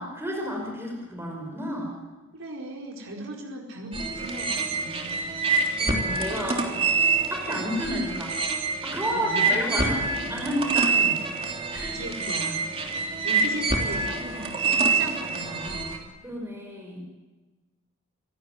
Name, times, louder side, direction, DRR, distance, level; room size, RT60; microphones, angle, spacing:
voice 1, 0.0-1.9 5.8-6.8 7.3-8.4 8.8-10.0 10.3-10.9 11.7-12.0 16.2-17.0, equal, 10° right, 1 dB, 5.8 m, -31 dB
voice 2, 2.3-5.2 9.1-10.4 10.9-11.2 11.8-12.6 13.2-15.9, right 1 dB, 80° right, 0 dB, 4.8 m, -38 dB
sound 1, 3.9-16.0, right 4 dB, 30° right, 3.2 m, -26 dB
28.0 x 17.0 x 9.5 m, 1.2 s
head